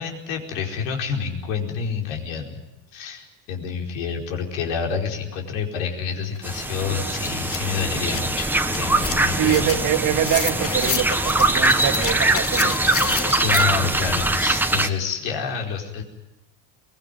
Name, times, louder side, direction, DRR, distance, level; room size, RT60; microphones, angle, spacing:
voice 1, 0.0-2.6 2.9-9.6 13.4-16.0, left 6 dB, 90° left, 2 dB, 4.8 m, -28 dB
sound 1, 6.3-6.4 6.8-13.6, left 7 dB, 35° left, 1.7 m, -31 dB
sound 2, 6.4-14.9, right 2 dB, 5° right, 1.4 m, -22 dB
voice 2, 9.3-12.8, right 10 dB, 55° right, 4 dB, 2.2 m, -24 dB
23.5 x 20.0 x 9.4 m, 1.0 s
cardioid pair, 120°, 37 cm